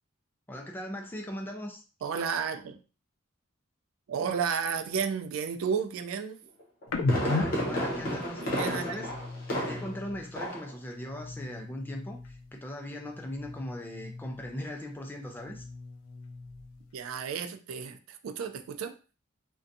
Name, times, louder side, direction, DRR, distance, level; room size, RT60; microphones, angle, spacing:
voice 1, 0.5-1.8 7.1-9.1 9.5-15.7, left 1 dB, 10° left, 2 dB, 0.3 m, -39 dB
voice 2, 2.0-2.8 4.1-6.4 8.4-9.0 16.9-19.0, right 6 dB, 80° right, 7 dB, 0.3 m, -32 dB
Fireworks, 6.6-10.0 10.4-10.7 11.1-11.2, equal, 45° left, 0.8 m, -32 dB
sound 1, 6.9-10.4 10.8-12.6 12.9-14.7 15.1-16.9, left 3 dB, 85° left, 0.4 m, -37 dB
2.5 x 2.2 x 2.5 m, 0.35 s
head